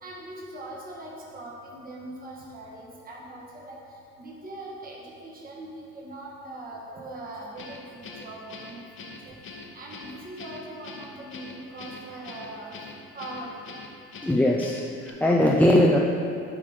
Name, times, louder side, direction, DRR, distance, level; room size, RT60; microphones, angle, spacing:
voice 1, 0.0-3.8 4.2-9.4 9.7-12.7 13.1-13.7, right 1 dB, 30° right, -4 dB, 1.2 m, -41 dB
Guitar, 7.6-15.1, left 3 dB, 40° left, 0.8 m, -43 dB
voice 2, 14.2-16.0, left 1 dB, 5° left, -3 dB, 0.4 m, -20 dB
7.4 x 3.7 x 5.0 m, 2.7 s
cardioid pair, 90°, 30 cm